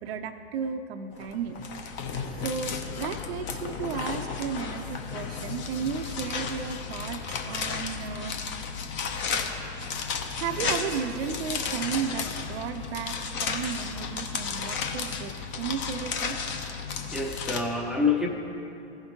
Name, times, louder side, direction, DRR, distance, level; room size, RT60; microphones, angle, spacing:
voice 1, 0.0-8.4 9.6-9.7 10.1-16.6, right 7 dB, 60° right, 7 dB, 0.6 m, -34 dB
sound 1, 1.1-17.6, left 5 dB, 30° left, 0.8 m, -33 dB
voice 2, 16.7-18.3, left 4 dB, ahead, 0 dB, 0.7 m, -28 dB
16.0 x 5.8 x 2.9 m, 2.8 s
hypercardioid pair, 120°, 35 cm